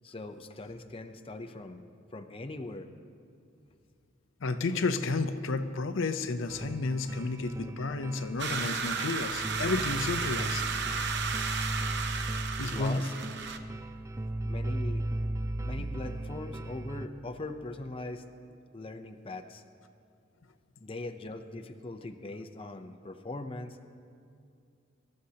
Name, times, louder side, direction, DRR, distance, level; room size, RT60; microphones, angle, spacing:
voice 1, 0.0-1.8 2.1-2.9 7.1-7.2 7.6-7.8 12.7-13.1 14.4-15.0 15.6-18.2 18.7-19.6 20.8-23.8, left 2 dB, 30° left, 6 dB, 0.6 m, -40 dB
voice 2, 4.4-10.6 12.6-13.1 15.8-15.9, left 3 dB, 75° left, 9 dB, 0.6 m, -31 dB
sound 1, 6.5-17.1, right 1 dB, 15° right, 0.4 m, -36 dB
sound 2, 8.4-13.6, right 5 dB, 60° right, 0.8 m, -33 dB
25.0 x 13.0 x 2.9 m, 2.4 s
head